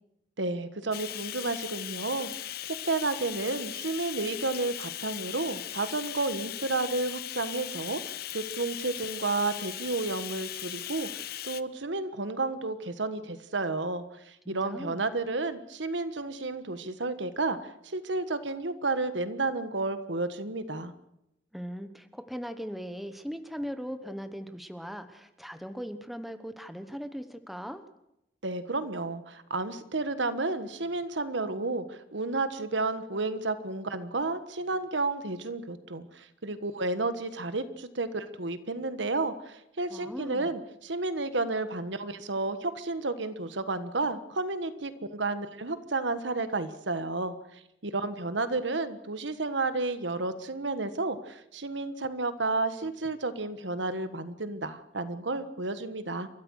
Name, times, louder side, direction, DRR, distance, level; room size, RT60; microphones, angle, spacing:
voice 1, 0.4-2.3 2.9-20.9 28.4-56.3, right 3 dB, 80° right, 11 dB, 1.5 m, -32 dB
Bathtub (filling or washing), 0.9-11.6, left 13 dB, 55° left, 0.7 m, -38 dB
voice 2, 14.4-15.0 21.5-27.8 39.9-40.5, equal, ahead, 9 dB, 1.1 m, -39 dB
29.5 x 13.5 x 6.5 m, 0.82 s
head